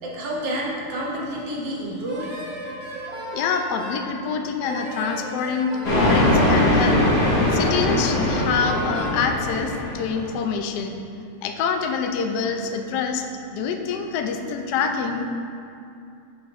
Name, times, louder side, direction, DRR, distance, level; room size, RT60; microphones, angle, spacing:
voice 1, 0.0-2.3, right 1 dB, 60° right, -4 dB, 1.7 m, -29 dB
Wind instrument woodwind instrument, 2.1-4.1 4.6-6.7 7.2-9.2, equal, 40° right, 0.8 m, -36 dB
voice 2, 3.3-7.0 7.5-10.9 11.4-15.3, left 5 dB, 80° left, 5 dB, 0.9 m, -26 dB
sound 1, 5.8-10.3, left 1 dB, 50° left, 1.7 m, -21 dB
6.6 x 6.2 x 3.4 m, 2.6 s
omnidirectional pair, 2.4 m